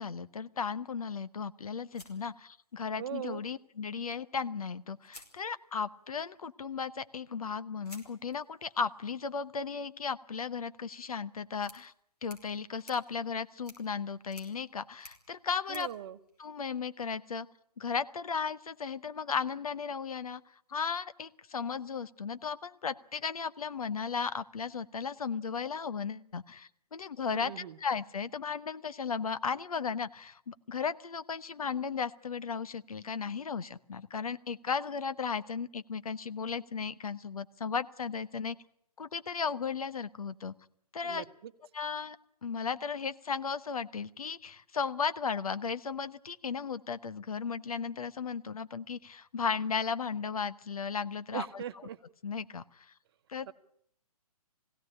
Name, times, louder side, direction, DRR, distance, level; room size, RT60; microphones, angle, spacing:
voice 1, 0.0-11.9 12.2-15.9 16.4-17.5 17.8-20.4 20.7-38.6 39.0-40.5 40.9-41.2 41.7-42.2 42.4-51.6 52.2-52.9 53.3-53.5, left 6 dB, 65° left, 14 dB, 1.0 m, -35 dB
sound 1, 1.9-3.1 4.4-4.5 5.0-6.0 7.8-17.0, left 1 dB, 85° left, 5.2 m, -57 dB
voice 2, 3.0-3.4 15.7-16.2 27.3-27.8 41.0-41.5 51.3-52.0 53.5-53.6, right 10 dB, 40° right, 10 dB, 1.1 m, -40 dB
20.5 x 16.5 x 10.0 m, 0.71 s
figure-of-eight pair, 135°, 19 cm